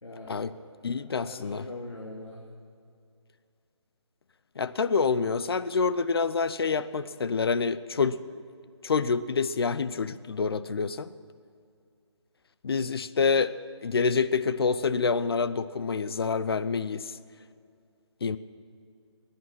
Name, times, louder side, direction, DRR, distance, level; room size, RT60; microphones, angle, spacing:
voice 1, 0.0-2.4, left 2 dB, 80° left, -2 dB, 2.4 m, -43 dB
voice 2, 0.8-1.7 4.6-8.2 8.8-11.1 12.6-13.6 13.8-17.1 18.2-18.4, left 5 dB, 55° left, 14 dB, 0.6 m, -27 dB
20.5 x 10.0 x 6.1 m, 2.4 s
figure-of-eight pair, 150°, 15 cm